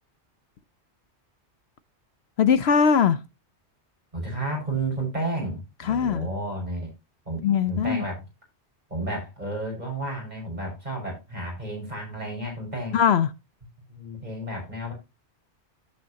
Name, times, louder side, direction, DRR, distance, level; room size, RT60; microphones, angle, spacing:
voice 1, 2.4-3.2 5.8-6.3 7.4-8.0 12.9-13.3, left 7 dB, 70° left, 0.9 m, -20 dB
voice 2, 4.1-6.9 7.3-8.2 8.9-13.0 13.9-14.9, right 2 dB, 40° right, 5.7 m, -32 dB
15.0 x 5.5 x 2.8 m
omnidirectional pair, 1.2 m